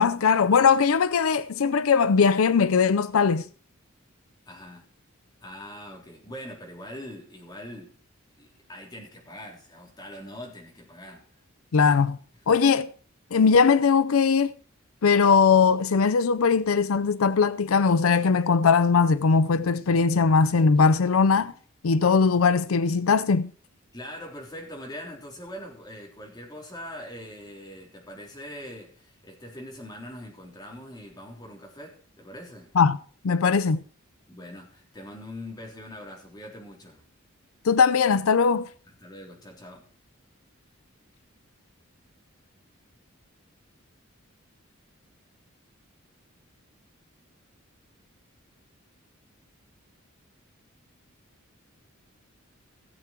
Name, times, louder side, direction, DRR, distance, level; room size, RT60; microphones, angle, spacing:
voice 1, 0.0-3.4 11.7-12.2 12.5-12.9 13.3-14.6 15.0-21.5 21.8-23.5 32.8-33.0 33.2-33.8 37.6-38.7, left 5 dB, 85° left, 0.5 m, -20 dB
voice 2, 4.5-4.9 5.4-7.9 8.4-11.3 12.5-12.6 23.9-32.7 34.3-37.0 39.0-39.9, left 1 dB, 20° left, 3.6 m, -42 dB
16.5 x 7.5 x 4.5 m
head